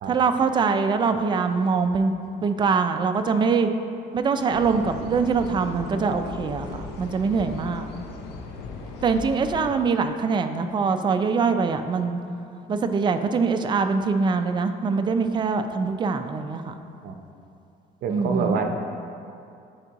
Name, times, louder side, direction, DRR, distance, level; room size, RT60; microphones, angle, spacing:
voice 1, 0.0-2.1 2.4-3.7 4.1-7.9 9.0-12.2 12.7-16.8 18.1-18.6, right 5 dB, 25° right, 8 dB, 0.3 m, -23 dB
sound 1, 4.5-9.8, left 3 dB, 80° left, 0.6 m, -37 dB
voice 2, 18.0-18.8, right 5 dB, 65° right, 4 dB, 0.6 m, -26 dB
10.5 x 3.6 x 2.9 m, 2.5 s
cardioid pair, 110°, 17 cm